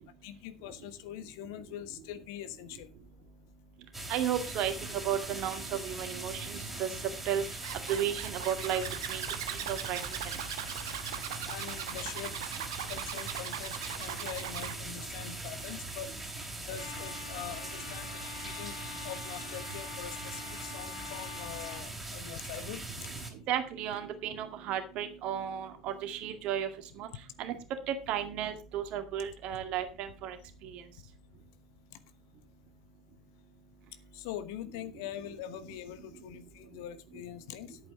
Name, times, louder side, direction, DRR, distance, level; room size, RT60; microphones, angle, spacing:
voice 1, 0.2-2.9 4.4-4.5 11.5-12.3 12.9-16.1 16.5-23.1 34.1-37.8, left 11 dB, 60° left, 12 dB, 1.1 m, -43 dB
sound 1, 3.9-23.3, right 2 dB, 10° right, 3.3 m, -41 dB
voice 2, 4.1-6.9 7.3-7.4 7.9-8.8 9.1-9.2 9.7-10.0 23.5-26.7 27.0-27.1 27.4-27.5 27.9-30.4, right 10 dB, 45° right, 7 dB, 2.0 m, -33 dB
Zipper (clothing), 7.6-14.8, right 11 dB, 65° right, 1.1 m, -39 dB
Trumpet, 16.7-21.8, left 6 dB, 80° left, 4.0 m, -45 dB
10.5 x 8.8 x 4.4 m, 0.30 s
figure-of-eight pair, 70°, 2 cm